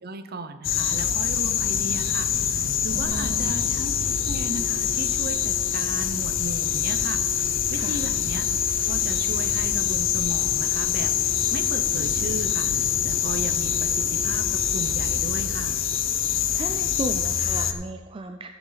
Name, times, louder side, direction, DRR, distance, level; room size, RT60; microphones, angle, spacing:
voice 1, 0.0-8.5 8.9-15.8, right 2 dB, 50° right, 10 dB, 0.8 m, -36 dB
sound 1, 0.6-17.7, left 9 dB, 70° left, 0.7 m, -25 dB
voice 2, 2.9-3.5 7.7-8.1 16.3-18.5, right 2 dB, 25° right, 6 dB, 0.4 m, -35 dB
sound 2, 3.0-16.5, right 2 dB, 45° left, 3.2 m, -39 dB
15.5 x 6.9 x 4.0 m, 1.5 s
head